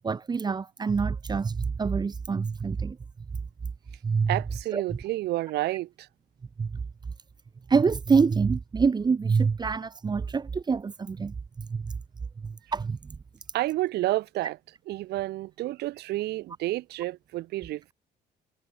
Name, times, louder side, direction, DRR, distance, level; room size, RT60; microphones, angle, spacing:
voice 1, 0.0-3.0 4.0-4.4 4.7-4.8 6.6-6.7 7.7-11.3 11.7-11.8 12.4-13.0, right 5 dB, 25° right, 1.0 m, -26 dB
voice 2, 4.3-6.1 13.5-14.6 14.9-17.9, right 16 dB, 75° right, 1.3 m, -30 dB
cardioid pair, 110°, 17 cm